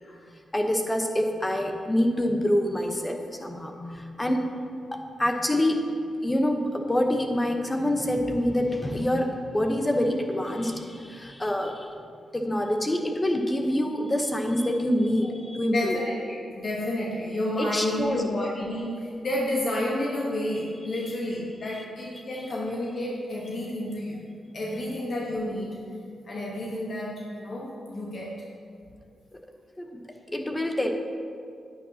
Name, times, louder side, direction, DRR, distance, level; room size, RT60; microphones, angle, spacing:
voice 1, 0.3-4.5 4.9-6.0 6.2-11.9 12.3-16.0 17.6-18.2 20.9-21.1 24.7-24.8 29.3-29.4 29.8-30.9, left 1 dB, 15° left, 4 dB, 0.9 m, -26 dB
voice 2, 15.7-24.2 24.5-25.8 26.2-28.4, left 1 dB, 55° left, -3 dB, 1.1 m, -30 dB
9.7 x 8.7 x 2.8 m, 2.3 s
cardioid pair, 75°, 0 cm